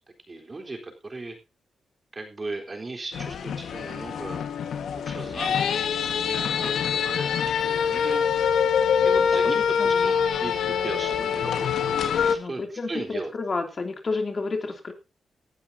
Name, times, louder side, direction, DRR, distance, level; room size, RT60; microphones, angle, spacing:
voice 1, 0.3-1.4 2.1-4.5 4.9-5.8 6.2-8.2 9.0-11.7 12.2-13.3, right 3 dB, 30° right, 3 dB, 3.8 m, -37 dB
sound 1, 3.1-12.4, left 7 dB, 75° left, 1.5 m, -24 dB
voice 2, 12.4-14.9, left 3 dB, 40° left, 5 dB, 2.9 m, -30 dB
18.0 x 11.5 x 2.7 m, 0.28 s
cardioid pair, 90°, 0 cm